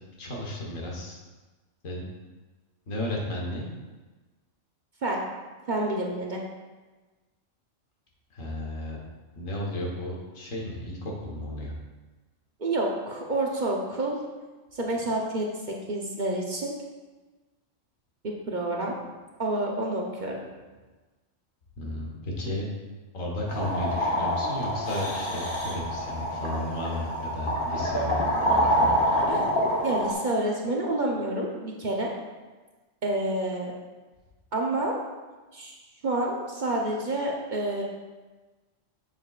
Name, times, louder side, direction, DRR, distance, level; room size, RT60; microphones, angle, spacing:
voice 1, 0.2-1.2 1.8-2.1 2.9-3.7 8.3-9.0 9.3-11.7 21.8-22.7 23.1-28.9, left 1 dB, 85° left, -2 dB, 1.7 m, -33 dB
voice 2, 5.7-6.4 12.6-14.2 14.7-16.7 18.2-18.9 19.4-20.4 29.3-32.1 33.0-33.7 34.5-35.0 35.5-35.7 36.0-37.8, right 2 dB, 45° right, -1 dB, 0.7 m, -28 dB
sound 1, 23.5-30.1, equal, 45° left, 1.2 m, -26 dB
7.2 x 6.5 x 2.4 m, 1.3 s
omnidirectional pair, 1.3 m